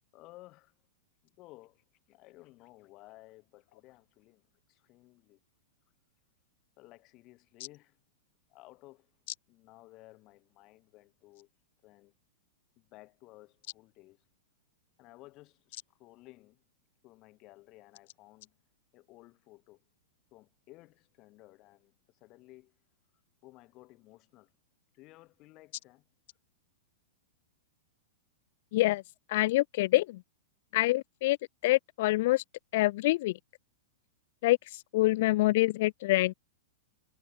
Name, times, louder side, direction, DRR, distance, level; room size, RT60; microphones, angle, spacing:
voice 1, 0.1-0.7 1.2-5.4 6.8-8.0 8.5-9.2 9.5-11.5 11.8-12.1 12.8-14.2 15.0-16.6 17.0-18.6 18.9-19.8 20.3-22.8 23.4-24.5 24.9-26.1, left 20 dB, 25° left, 5.0 m, -56 dB
voice 2, 28.7-29.0 29.3-30.2 30.7-31.4 31.6-32.4 32.7-33.4 34.4-34.6 34.9-36.3, left 18 dB, 45° left, 0.9 m, -26 dB
supercardioid pair, 170°, 0 cm